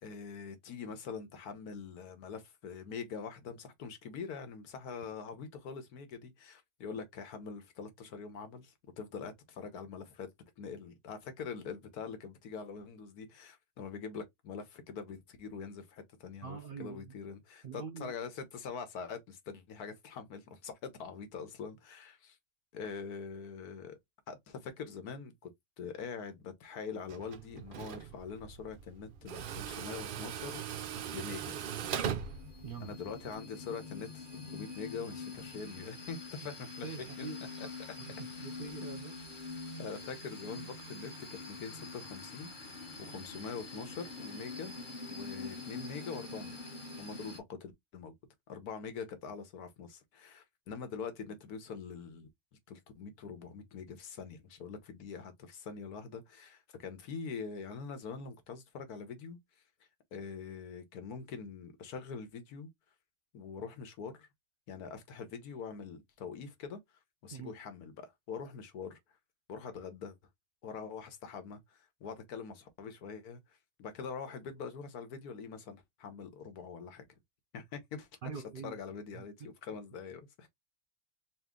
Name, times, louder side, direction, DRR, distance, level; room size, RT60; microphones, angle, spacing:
voice 1, 0.0-10.3 10.6-22.4 22.7-24.0 24.3-31.6 32.8-36.9 37.2-37.3 37.6-37.7 38.4-38.5 39.8-42.5 43.0-44.8 45.1-46.6 47.0-48.1 48.5-52.3 52.7-59.4 60.1-62.7 63.3-64.3 64.7-66.8 67.2-69.0 69.5-70.2 70.6-77.1 77.5-78.1 78.6-80.5, left 5 dB, 90° left, 1.5 m, -44 dB
voice 2, 16.4-17.1 17.6-18.1 32.6-33.0 36.8-37.4 38.1-39.1 67.3-67.5 78.2-78.8 79.1-79.5, right 6 dB, 50° right, 0.7 m, -44 dB
Tools, 27.1-33.3, right 8 dB, 85° right, 0.4 m, -40 dB
sound 1, 31.7-47.4, left 3 dB, 35° left, 1.2 m, -45 dB
4.2 x 2.5 x 3.6 m
omnidirectional pair, 1.6 m